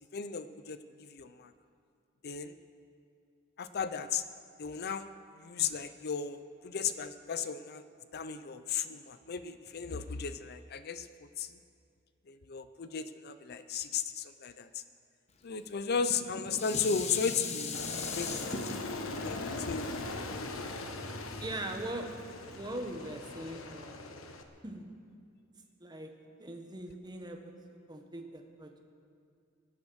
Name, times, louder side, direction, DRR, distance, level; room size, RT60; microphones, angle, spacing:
voice 1, 0.1-0.8 1.1-1.5 2.2-2.5 3.6-4.2 4.6-5.1 5.4-7.8 8.1-11.1 11.4-11.5 12.3-14.8 15.4-18.6 19.2-19.9, left 6 dB, 50° left, 11 dB, 0.5 m, -35 dB
Dishes pots and pans, 16.0-21.3 21.8-21.9, left 4 dB, 35° left, 1.0 m, -39 dB
Aircraft, 17.7-24.4, left 2 dB, 80° left, 1.2 m, -40 dB
voice 2, 21.4-24.3 24.6-24.8 25.8-27.5 27.9-28.8, right 1 dB, 20° right, 4 dB, 1.3 m, -41 dB
22.5 x 8.6 x 6.3 m, 2.3 s
head